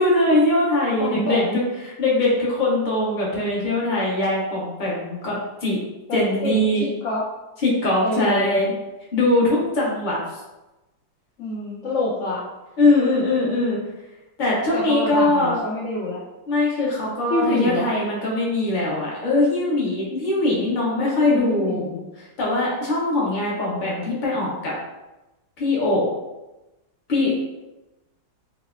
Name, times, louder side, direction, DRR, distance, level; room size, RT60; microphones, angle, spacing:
voice 1, 0.0-1.6 2.0-5.8 6.1-6.9 7.6-8.7 9.1-10.2 12.8-13.8 14.4-15.5 16.5-21.8 22.4-24.7 25.6-26.1 27.1-27.3, left 2 dB, 35° left, -5 dB, 0.9 m, -21 dB
voice 2, 1.0-1.6 6.1-7.3 8.0-8.6 11.4-12.5 14.7-16.2 17.3-17.9 21.0-22.0, left 2 dB, 60° left, -6 dB, 0.9 m, -27 dB
4.9 x 2.1 x 2.5 m, 1.0 s
omnidirectional pair, 1.7 m